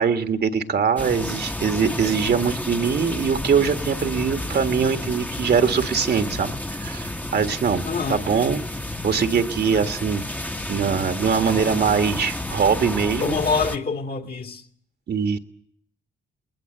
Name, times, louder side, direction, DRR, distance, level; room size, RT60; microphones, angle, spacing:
voice 1, 0.0-7.8 8.1-8.6 9.0-10.2 10.7-13.4 15.1-15.4, right 6 dB, 55° right, 1.6 m, -22 dB
sound 1, 1.0-13.8, left 1 dB, 10° left, 1.1 m, -31 dB
voice 2, 7.8-8.2 13.2-14.6, left 5 dB, 50° left, 2.3 m, -25 dB
20.5 x 20.0 x 7.9 m
cardioid pair, 90°, 20 cm